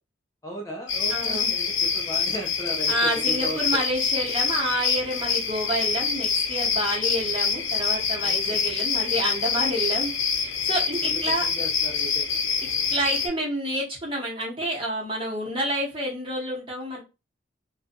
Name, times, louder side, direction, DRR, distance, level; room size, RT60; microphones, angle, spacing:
voice 1, 0.4-3.8 8.2-8.6 11.0-12.3, equal, 15° left, -1 dB, 0.4 m, -36 dB
sound 1, 0.9-13.3, left 6 dB, 80° left, 0.6 m, -26 dB
voice 2, 1.1-1.5 2.9-10.1 10.4-11.5 12.9-17.0, right 1 dB, 25° right, -3 dB, 1.0 m, -28 dB
2.6 x 2.2 x 2.5 m, 0.27 s
head